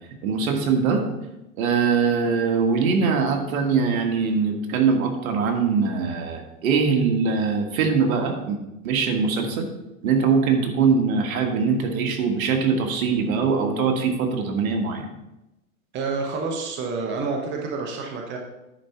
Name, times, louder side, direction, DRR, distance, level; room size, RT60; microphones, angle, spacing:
voice 1, 0.2-1.0 1.6-9.7 10.0-15.1, right 5 dB, 65° right, 4 dB, 1.7 m, -22 dB
voice 2, 15.9-18.4, right 4 dB, 25° right, 1 dB, 1.1 m, -28 dB
10.0 x 4.2 x 5.7 m, 0.95 s
hypercardioid pair, 140°, 45 cm